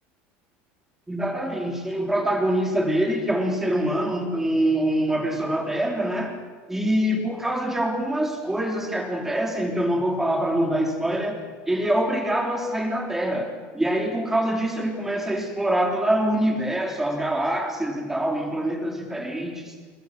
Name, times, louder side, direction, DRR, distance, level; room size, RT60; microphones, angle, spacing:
voice 1, 1.1-6.4 6.7-11.4 11.7-19.7, right 1 dB, 5° right, 2 dB, 3.3 m, -25 dB
21.0 x 20.5 x 7.9 m, 1.4 s
cardioid pair, 145°, 5 cm